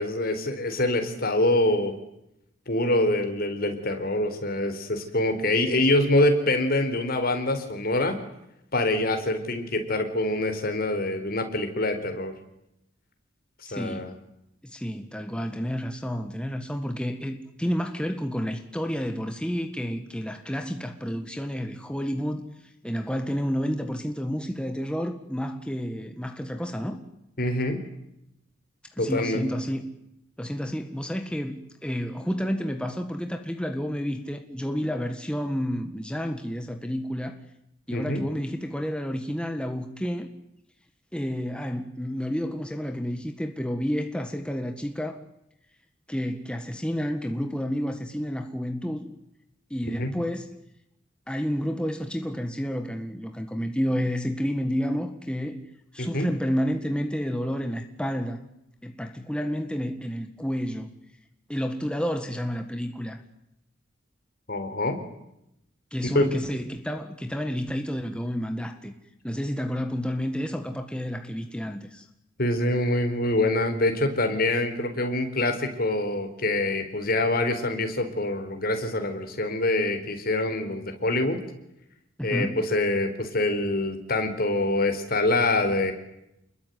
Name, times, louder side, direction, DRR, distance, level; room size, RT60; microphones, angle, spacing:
voice 1, 0.0-1.9 2.7-8.2 8.7-12.3 13.7-14.1 27.4-27.8 29.0-29.4 37.9-38.2 50.0-50.1 56.0-56.3 64.5-65.0 66.1-66.2 72.4-81.4 82.2-85.9, left 2 dB, 50° left, 7 dB, 4.4 m, -25 dB
voice 2, 13.6-14.2 14.6-22.5 22.8-27.0 29.0-29.9 30.4-37.4 37.9-40.3 41.1-45.2 46.1-49.1 49.7-50.5 51.3-55.6 55.9-58.4 58.8-60.9 61.5-63.2 65.9-68.9 69.2-72.0 82.2-82.6, equal, 5° left, 6 dB, 1.7 m, -30 dB
29.0 x 21.5 x 9.4 m, 0.84 s
head